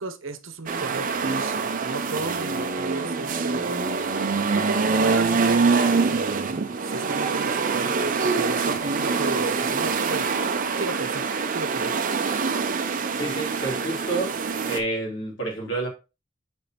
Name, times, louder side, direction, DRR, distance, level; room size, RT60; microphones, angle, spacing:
voice 1, 0.0-10.4 10.8-12.0, right 2 dB, 70° right, 10 dB, 0.9 m, -35 dB
sound 1, 0.7-14.8, right 4 dB, 40° right, 0.5 m, -25 dB
voice 2, 13.1-14.3 14.7-15.9, right 2 dB, 65° left, -1 dB, 3.0 m, -29 dB
6.9 x 5.1 x 3.0 m, 0.29 s
head